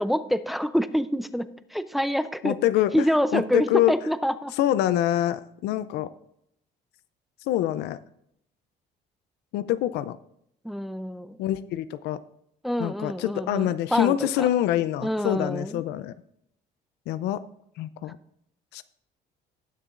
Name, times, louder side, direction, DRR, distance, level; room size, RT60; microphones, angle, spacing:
voice 1, 0.0-2.6 2.9-4.5 10.6-11.4 12.6-14.5 15.0-15.8, equal, ahead, 12 dB, 0.5 m, -26 dB
voice 2, 2.4-3.1 3.3-3.9 4.6-6.1 7.5-8.0 9.5-10.2 11.4-12.2 12.8-16.1 17.1-17.4 17.8-18.2 18.7-18.8, left 13 dB, 85° left, 14 dB, 0.5 m, -25 dB
18.5 x 6.8 x 2.5 m, 0.75 s
cardioid pair, 110°, 17 cm